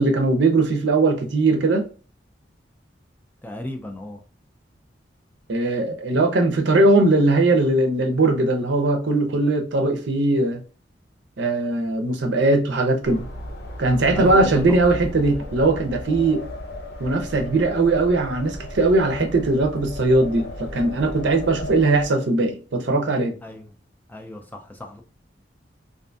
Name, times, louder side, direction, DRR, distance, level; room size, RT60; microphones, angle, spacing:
voice 1, 0.0-1.9 5.5-10.6 11.4-13.3 13.8-16.4 17.0-23.4, right 2 dB, 75° right, 0.6 m, -20 dB
voice 2, 3.4-4.2 14.1-14.8 23.4-23.7 24.1-25.0, left 1 dB, 10° left, 0.3 m, -34 dB
sound 1, 13.0-22.1, left 1 dB, 60° left, 0.6 m, -35 dB
2.5 x 2.5 x 2.3 m
head